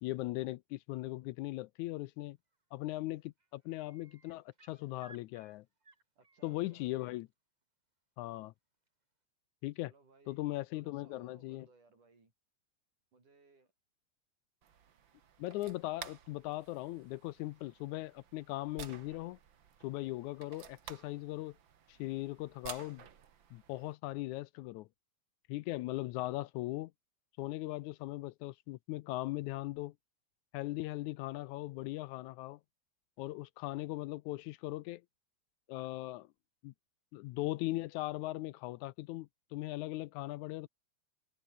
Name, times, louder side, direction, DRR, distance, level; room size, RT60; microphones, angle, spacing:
voice 1, 0.0-2.4 2.7-5.7 6.4-7.3 8.2-8.5 9.6-9.9 10.3-11.7 15.4-19.4 19.8-21.6 21.9-23.0 23.5-24.9 25.5-26.9 27.4-29.9 30.5-32.6 33.2-35.0 35.7-36.3 36.6-36.7 37.1-40.7, left 18 dB, 80° left, 1.9 m, -39 dB
sound 1, 2.5-2.8 3.1-7.2 8.9-9.0, right 3 dB, 25° right, 0.9 m, -63 dB
voice 2, 6.2-6.9 9.8-10.5 10.7-12.3 13.1-13.7, right 3 dB, 80° right, 9.1 m, -64 dB
sound 2, 14.6-23.9, right 8 dB, 45° right, 1.9 m, -53 dB
omnidirectional pair, 3.5 m